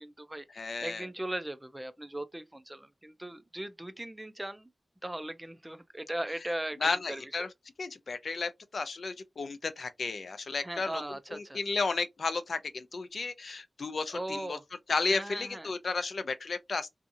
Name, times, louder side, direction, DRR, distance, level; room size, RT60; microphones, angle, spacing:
voice 1, 0.0-4.7 5.0-6.8 7.1-7.5 10.6-11.6 14.1-14.6 15.1-15.7, right 1 dB, 15° right, 0.4 m, -39 dB
voice 2, 0.6-1.0 6.8-7.5 7.8-11.0 11.5-14.6 14.9-17.0, left 4 dB, 75° left, 0.4 m, -33 dB
2.7 x 2.4 x 2.5 m
wide cardioid pair, 95°, 0 cm